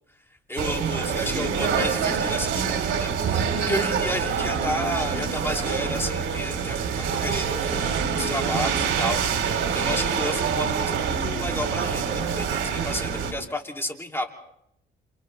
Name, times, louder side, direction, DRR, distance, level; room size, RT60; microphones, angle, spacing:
voice 1, 0.5-9.5 9.7-14.3, left 1 dB, 10° left, 2 dB, 2.7 m, -32 dB
sound 1, 0.6-13.3, right 6 dB, 75° right, 3.1 m, -26 dB
29.5 x 27.5 x 3.3 m, 0.78 s
cardioid pair, 90°, 20 cm